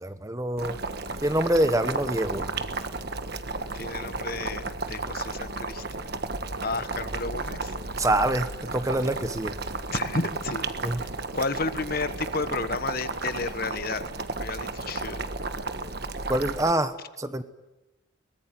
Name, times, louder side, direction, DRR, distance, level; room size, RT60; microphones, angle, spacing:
voice 1, 0.0-0.8 1.2-2.5 8.0-9.5 10.8-11.0 16.3-17.4, right 1 dB, 15° right, 11 dB, 1.1 m, -25 dB
Boiling, 0.6-16.7, right 3 dB, 55° right, 1.4 m, -33 dB
sound 1, 0.7-13.5, equal, 85° right, 2.3 m, -47 dB
voice 2, 3.7-6.1 6.6-7.7 9.9-10.6 11.3-14.0 14.4-15.2, left 3 dB, 50° left, 11 dB, 1.3 m, -32 dB
23.0 x 20.0 x 9.3 m, 1.0 s
head